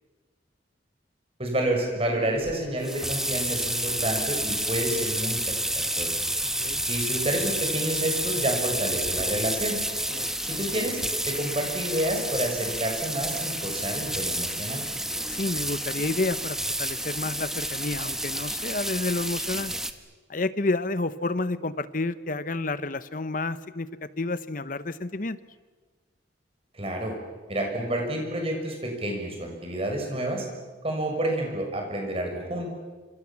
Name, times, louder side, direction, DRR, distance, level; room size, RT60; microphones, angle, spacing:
voice 1, 1.4-6.1 6.9-9.8 10.5-11.0 11.3-14.8 26.7-27.1 27.5-30.5 30.8-32.8, right 1 dB, 30° right, 2 dB, 6.4 m, -29 dB
sound 1, 2.4-19.9, right 1 dB, 5° right, 1.2 m, -30 dB
voice 2, 15.3-19.7 20.3-25.4, left 2 dB, 45° left, 14 dB, 1.0 m, -30 dB
27.5 x 26.5 x 7.3 m, 1.4 s
head